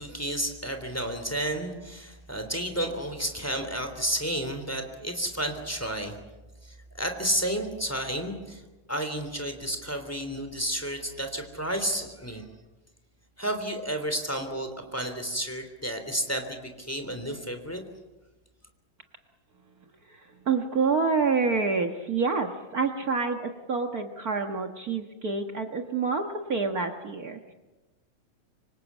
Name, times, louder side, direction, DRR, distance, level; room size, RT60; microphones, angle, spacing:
voice 1, 0.0-6.2 6.6-8.6 8.9-12.4 13.4-17.8, right 1 dB, 5° left, 6 dB, 2.6 m, -31 dB
voice 2, 20.1-27.5, right 4 dB, 75° right, 5 dB, 0.8 m, -28 dB
26.0 x 25.0 x 8.3 m, 1.2 s
omnidirectional pair, 4.0 m